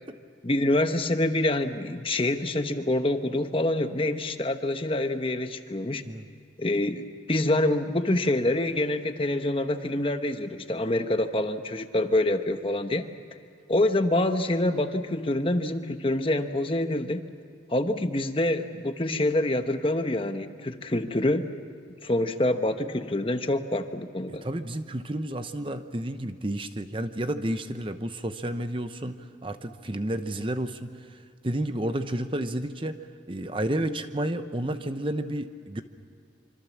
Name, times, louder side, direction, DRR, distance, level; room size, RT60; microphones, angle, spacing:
voice 1, 0.4-6.0 6.6-13.1 13.7-17.2 17.7-21.5 22.0-24.4, left 1 dB, 30° left, 8 dB, 1.0 m, -26 dB
voice 2, 24.3-29.2 29.4-30.9 31.4-33.0 33.3-35.8, right 1 dB, 25° right, 9 dB, 0.8 m, -31 dB
25.5 x 25.5 x 7.3 m, 2.4 s
head